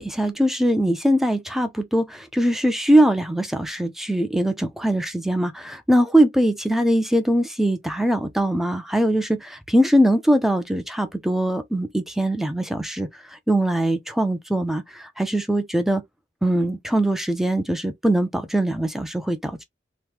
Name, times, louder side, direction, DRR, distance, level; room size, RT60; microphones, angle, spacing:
voice 1, 0.0-13.1 13.5-16.0 16.4-19.6, right 1 dB, ahead, 0.4 m, -21 dB
3.0 x 2.1 x 3.2 m
head